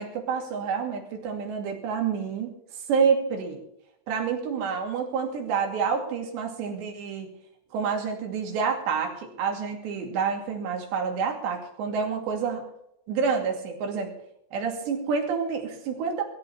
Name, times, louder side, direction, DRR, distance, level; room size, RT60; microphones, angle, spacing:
voice 1, 0.0-2.5 2.9-3.6 4.1-7.3 7.7-12.6 13.1-14.1 14.5-16.2, right 6 dB, 60° right, 2 dB, 4.5 m, -28 dB
22.5 x 13.5 x 3.4 m, 0.77 s
omnidirectional pair, 5.9 m